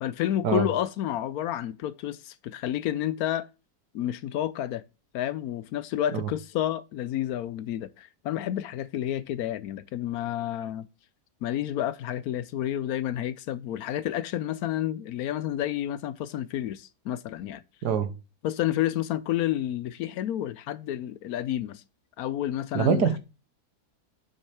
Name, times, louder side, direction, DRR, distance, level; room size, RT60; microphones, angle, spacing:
voice 1, 0.0-3.5 3.9-4.8 5.1-10.9 11.4-17.6 18.4-21.8 22.2-23.1, left 12 dB, 75° left, 1.0 m, -30 dB
voice 2, 22.7-23.2, right 6 dB, 80° right, 1.7 m, -24 dB
8.8 x 7.2 x 3.4 m
omnidirectional pair, 1.7 m